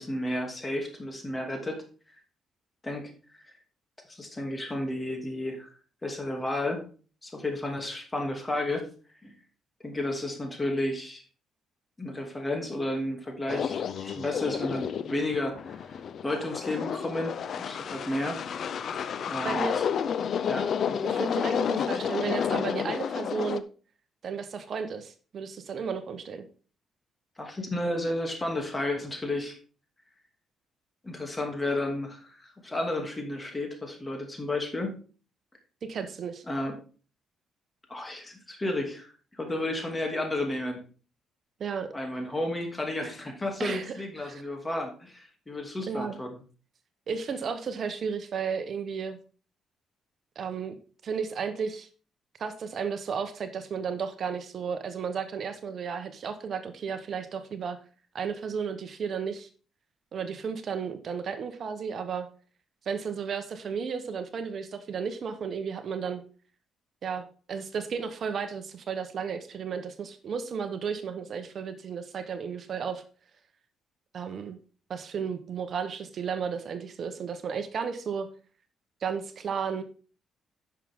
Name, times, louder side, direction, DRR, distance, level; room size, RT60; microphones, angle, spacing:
voice 1, 0.0-1.8 2.8-3.1 4.1-5.7 6.0-6.8 7.2-8.9 9.2-9.3 9.8-11.2 12.0-15.8 16.2-18.4 19.3-19.9 20.5-20.7 27.4-29.6 31.0-35.0 36.5-36.8 37.9-40.8 41.9-46.4, left 1 dB, 20° left, 3 dB, 2.6 m, -32 dB
sound 1, 13.5-23.6, left 7 dB, 60° left, 0.6 m, -31 dB
voice 2, 19.4-19.8 20.9-23.6 24.2-26.5 35.8-36.4 41.6-41.9 43.6-44.4 45.9-46.2 47.1-49.2 50.4-50.8 51.0-51.9 52.4-57.8 58.1-59.5 60.1-62.3 62.8-66.2 67.0-73.0 74.1-74.6 74.9-78.3 79.0-79.8, right 6 dB, 55° right, 9 dB, 1.0 m, -33 dB
10.5 x 6.2 x 3.7 m, 0.39 s
cardioid pair, 90°, 0 cm